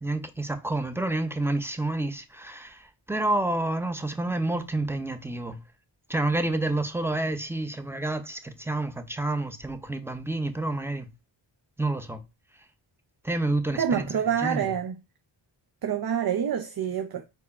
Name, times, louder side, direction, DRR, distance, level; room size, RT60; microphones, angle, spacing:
voice 1, 0.0-5.6 6.1-11.1 11.8-12.2 13.2-14.7, right 2 dB, 5° right, 0.7 m, -29 dB
voice 2, 13.7-15.0 15.8-17.2, right 8 dB, 50° right, 0.6 m, -27 dB
4.6 x 2.3 x 4.1 m
cardioid pair, 65°, 49 cm